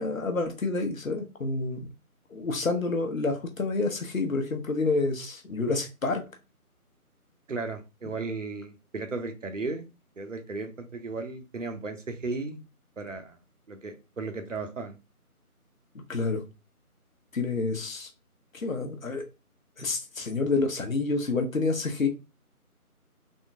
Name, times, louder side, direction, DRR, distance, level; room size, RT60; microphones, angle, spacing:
voice 1, 0.0-1.8 2.3-6.2 16.1-16.4 17.3-18.1 18.5-19.2 19.8-22.1, left 3 dB, 60° left, 4 dB, 0.8 m, -28 dB
voice 2, 7.5-9.9 10.2-12.6 13.0-13.4 13.7-15.0, right 3 dB, 55° right, 6 dB, 0.7 m, -35 dB
3.6 x 2.1 x 2.7 m, 0.28 s
figure-of-eight pair, 170°, 45 cm